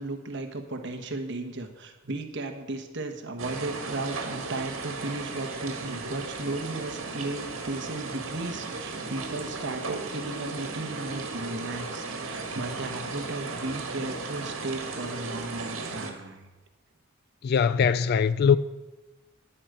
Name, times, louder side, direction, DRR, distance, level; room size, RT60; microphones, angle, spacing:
voice 1, 0.0-16.5, right 2 dB, 60° right, 1.2 m, -35 dB
sound 1, 3.4-16.1, right 3 dB, 85° right, 1.7 m, -36 dB
voice 2, 17.4-18.6, left 6 dB, 50° left, 0.3 m, -21 dB
10.5 x 8.6 x 6.6 m
head